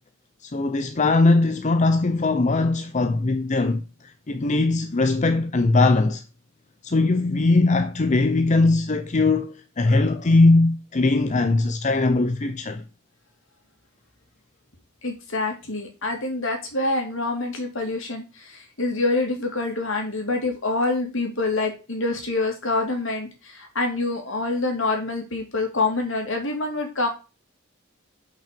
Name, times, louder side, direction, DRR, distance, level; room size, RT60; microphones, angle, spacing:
voice 1, 0.4-3.8 4.3-6.2 6.8-12.8, left 3 dB, 35° left, 0.6 m, -20 dB
voice 2, 15.0-27.1, left 2 dB, 65° left, 2.7 m, -26 dB
6.0 x 5.7 x 6.8 m
head